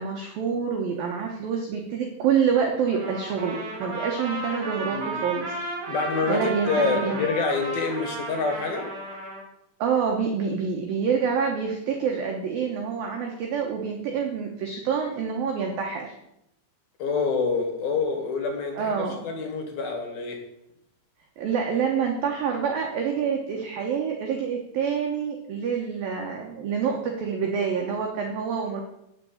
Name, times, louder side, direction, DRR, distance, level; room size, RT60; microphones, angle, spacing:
voice 1, 0.0-5.5 6.3-7.3 9.8-16.1 18.8-19.2 21.4-28.8, right 6 dB, 70° right, 2 dB, 2.3 m, -27 dB
Trumpet, 2.9-9.4, right 2 dB, 45° right, 3.6 m, -34 dB
voice 2, 5.9-8.9 17.0-18.9 19.2-20.4, left 4 dB, 60° left, 2 dB, 3.2 m, -27 dB
10.0 x 6.9 x 8.5 m, 0.82 s
omnidirectional pair, 5.6 m